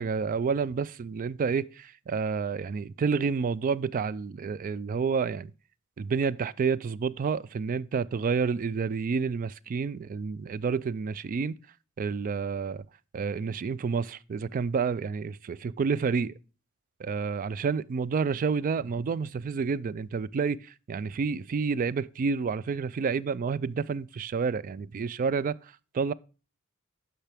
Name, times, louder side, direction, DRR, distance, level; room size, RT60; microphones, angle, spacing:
voice 1, 0.0-5.5 6.0-11.6 12.0-12.8 13.1-16.3 17.0-25.6 25.9-26.1, right 5 dB, 40° right, 0.3 m, -29 dB
10.0 x 6.7 x 3.4 m
head